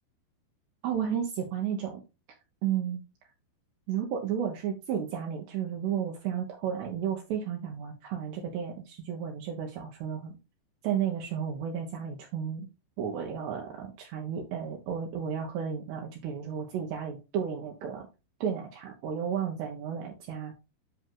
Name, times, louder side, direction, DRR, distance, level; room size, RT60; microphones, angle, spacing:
voice 1, 0.8-2.0 2.6-3.0 3.9-10.3 10.8-12.7 13.0-18.1 18.4-20.5, right 8 dB, 70° right, 1 dB, 3.0 m, -33 dB
10.5 x 3.5 x 3.8 m, 0.27 s
omnidirectional pair, 5.5 m